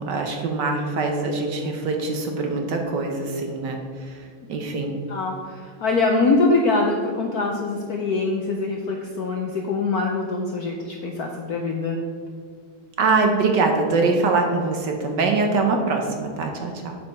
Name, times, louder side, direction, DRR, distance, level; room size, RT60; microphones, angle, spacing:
voice 1, 0.0-4.2 4.5-5.0 13.0-17.0, right 3 dB, 60° right, 3 dB, 1.3 m, -23 dB
voice 2, 5.8-12.0, left 3 dB, 65° left, 1 dB, 0.9 m, -23 dB
8.3 x 4.9 x 5.7 m, 2.1 s
omnidirectional pair, 2.4 m